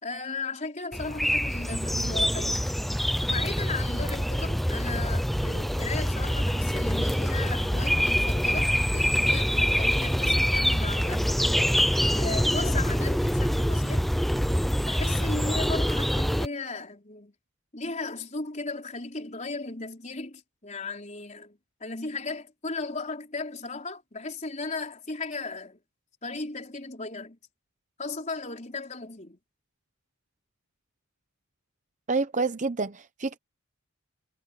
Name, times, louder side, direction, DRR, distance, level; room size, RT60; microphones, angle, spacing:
voice 1, 0.0-2.7 3.2-11.7 12.2-14.1 14.8-17.3 17.7-25.8 26.2-27.4 28.0-29.4, left 3 dB, 35° left, 4.4 m, -36 dB
sound 1, 0.9-16.5, equal, ahead, 0.6 m, -25 dB
voice 2, 32.1-33.4, right 3 dB, 35° right, 0.8 m, -28 dB
head